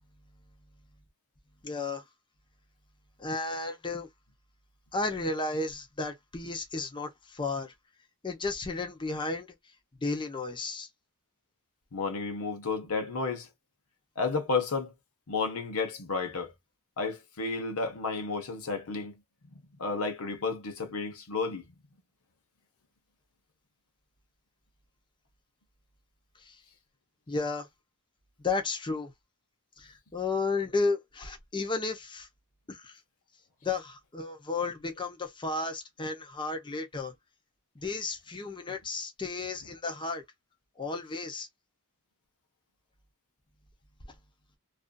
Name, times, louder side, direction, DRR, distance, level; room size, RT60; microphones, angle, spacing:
voice 1, 1.6-2.0 3.2-4.1 4.9-7.7 8.2-9.5 10.0-10.9 26.4-26.6 27.3-27.7 28.4-29.1 29.8-32.3 32.7-33.0 33.6-37.1 37.8-40.2 40.8-41.5, left 3 dB, 20° left, 0.6 m, -33 dB
voice 2, 11.9-13.5 14.2-14.9 15.3-16.5 17.0-19.2 19.4-21.8, left 4 dB, 70° left, 0.8 m, -32 dB
2.5 x 2.4 x 2.2 m
head